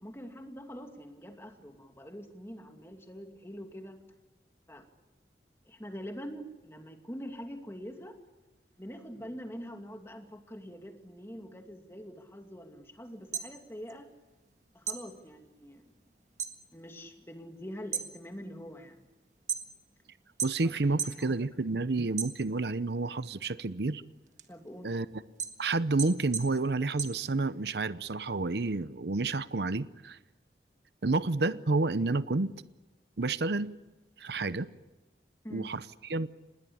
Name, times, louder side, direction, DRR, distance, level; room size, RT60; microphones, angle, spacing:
voice 1, 0.0-4.0 4.7-4.9 5.7-8.2 8.8-14.1 14.7-15.9 16.7-19.0 20.6-21.4 24.5-24.9 35.4-35.7, equal, 15° left, 2.5 m, -44 dB
sound 1, 13.1-14.5 14.8-16.6 16.9-17.4 17.8-20.0 20.4-21.2 21.6-22.8 23.3-27.8, right 7 dB, 40° right, 1.7 m, -37 dB
voice 2, 20.4-24.0 24.8-25.1 25.6-30.2 31.0-32.5 33.2-33.7 34.2-34.7 35.5-36.3, right 3 dB, 70° right, 0.8 m, -30 dB
27.0 x 20.5 x 8.6 m
head